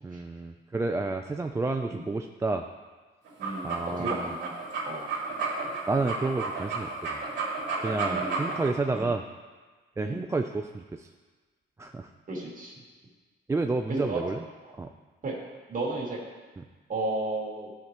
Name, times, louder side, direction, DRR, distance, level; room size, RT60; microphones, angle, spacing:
voice 1, 0.0-2.7 3.6-4.3 5.9-7.2 7.8-9.2 10.0-11.1 11.8-12.1 13.5-14.4 14.8-14.9 16.6-16.7, right 3 dB, 15° right, 5 dB, 0.3 m, -30 dB
sound 1, 3.3-8.7, right 4 dB, 65° right, 2.2 m, -32 dB
voice 2, 3.4-4.5 4.9-5.0 8.0-8.6 8.9-9.1 10.0-10.2 12.3-12.7 13.9-14.2 14.6-14.7 15.2-15.4 15.7-16.2 16.9-17.7, right 2 dB, 40° right, -4 dB, 2.3 m, -33 dB
12.0 x 4.6 x 2.9 m, 1.3 s
cardioid pair, 90°, 20 cm